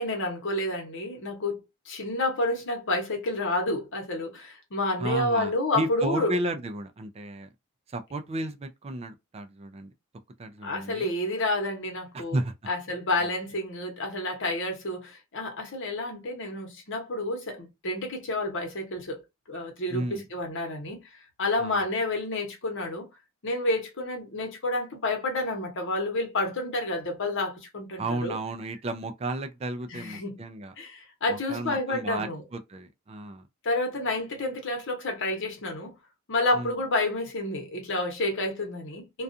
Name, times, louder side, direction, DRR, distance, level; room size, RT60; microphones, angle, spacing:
voice 1, 0.0-6.4 10.6-12.4 12.7-19.2 19.5-21.0 21.4-23.1 23.4-28.3 29.9-30.4 30.8-32.4 33.6-35.9 36.3-39.2, left 2 dB, 60° left, 1.0 m, -29 dB
voice 2, 5.0-7.5 7.9-9.9 10.4-11.1 12.1-12.5 19.9-20.2 21.6-21.8 28.0-30.7 31.3-33.4 36.5-36.8, right 2 dB, 30° right, 0.3 m, -33 dB
2.4 x 2.3 x 2.6 m
head